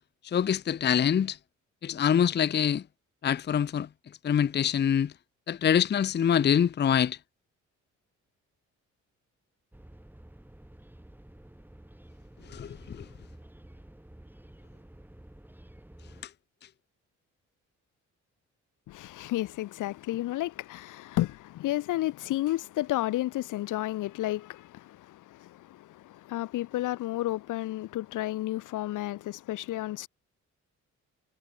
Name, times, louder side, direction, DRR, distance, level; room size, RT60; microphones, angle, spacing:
voice 1, 0.2-1.4 1.8-2.8 3.2-3.9 4.2-5.1 5.5-7.2 12.5-13.0, left 8 dB, 35° left, 0.7 m, -25 dB
sound 1, 9.7-16.3, right 1 dB, 5° right, 7.5 m, -51 dB
voice 2, 18.9-30.1, left 15 dB, 90° left, 5.0 m, -32 dB
cardioid pair, 90°, 30 cm